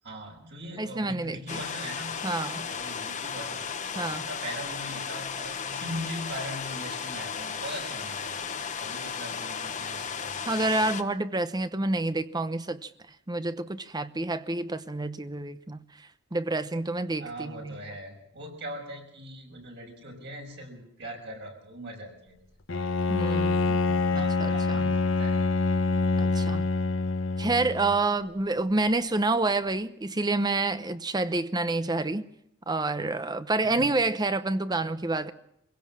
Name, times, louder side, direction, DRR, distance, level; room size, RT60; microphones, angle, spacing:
voice 1, 0.0-2.2 2.7-8.4 8.8-10.8 17.2-22.5 24.1-25.4 33.6-34.0, equal, 60° right, 6.2 m, -41 dB
voice 2, 0.8-1.6 2.2-2.7 4.0-4.2 10.5-12.9 13.3-15.8 16.3-17.8 23.1-23.8 24.1-24.9 26.2-26.7 27.4-32.3 32.7-35.3, right 2 dB, 20° right, 0.8 m, -28 dB
sound 1, 1.5-11.0, left 6 dB, 40° left, 1.1 m, -35 dB
Bowed string instrument, 22.7-28.0, left 3 dB, 75° left, 1.1 m, -26 dB
24.0 x 16.5 x 7.4 m
head